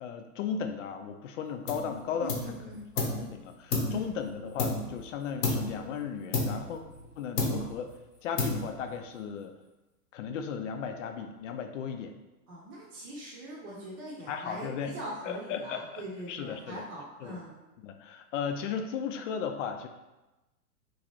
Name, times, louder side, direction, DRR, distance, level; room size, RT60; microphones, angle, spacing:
voice 1, 0.0-2.5 3.0-6.8 7.2-7.9 8.2-9.5 10.1-12.1 14.3-14.9 15.2-16.8 17.2-17.4 17.8-19.9, left 7 dB, 55° left, 6 dB, 0.5 m, -36 dB
sound 1, 1.7-2.0 2.3-3.3 3.7-5.0 5.4-5.8 6.3-7.1 7.4-7.9 8.4-8.9, left 3 dB, 90° left, 0.8 m, -31 dB
voice 2, 2.2-2.9 3.8-4.1 12.5-17.6, right 1 dB, 45° right, -5 dB, 0.8 m, -42 dB
3.0 x 2.4 x 2.9 m, 1.0 s
hypercardioid pair, 120°, 46 cm